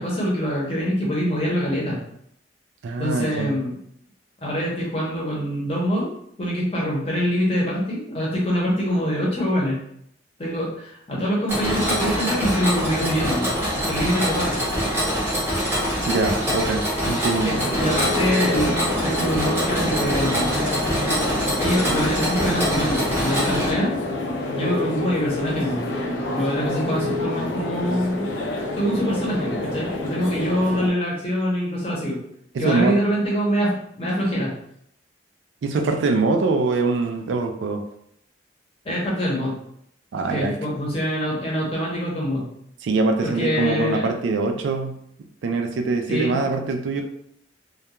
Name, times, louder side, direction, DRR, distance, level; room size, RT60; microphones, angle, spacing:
voice 1, 0.0-2.0 3.0-3.8 4.4-6.1 6.4-9.8 10.4-14.6 17.4-20.5 21.4-23.9 24.5-25.8 26.3-28.3 28.8-32.2 32.6-34.5 38.8-39.6 40.3-42.5 43.2-44.0 46.1-46.4, equal, 30° left, -4 dB, 0.7 m, -24 dB
voice 2, 2.8-3.5 16.1-17.5 32.5-33.0 35.6-37.8 40.1-40.6 42.8-45.0 45.4-47.0, right 3 dB, 75° right, 4 dB, 0.3 m, -23 dB
Mechanisms, 11.5-23.7, equal, 10° right, 0.7 m, -24 dB
sound 1, 17.5-30.9, left 2 dB, 85° left, 0.5 m, -28 dB
2.3 x 2.2 x 2.9 m, 0.71 s
head